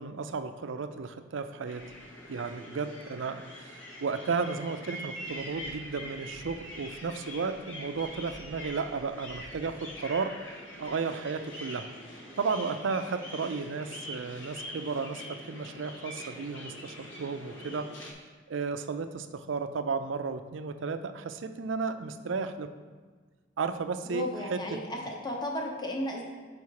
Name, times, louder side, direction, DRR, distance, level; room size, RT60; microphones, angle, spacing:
voice 1, 0.0-1.8 2.3-10.4 10.8-11.9 12.4-17.9 18.5-22.7 23.6-24.8, right 4 dB, 75° right, 9 dB, 0.5 m, -33 dB
sound 1, 1.7-18.1, equal, 75° left, 1.1 m, -44 dB
voice 2, 24.1-26.2, left 1 dB, 20° left, 0 dB, 0.9 m, -34 dB
7.0 x 4.9 x 4.7 m, 1.5 s
head